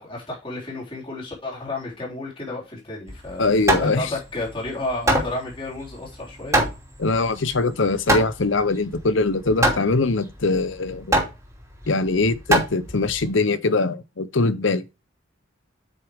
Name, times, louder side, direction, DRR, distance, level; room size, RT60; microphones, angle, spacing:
voice 1, 0.0-3.5 3.8-6.6, left 2 dB, 25° left, 3.8 m, -32 dB
Hammer, 3.1-13.3, right 1 dB, 15° right, 2.7 m, -25 dB
voice 2, 3.4-4.1 7.0-11.1 11.9-14.8, left 3 dB, 65° left, 0.8 m, -22 dB
8.6 x 6.0 x 3.5 m
head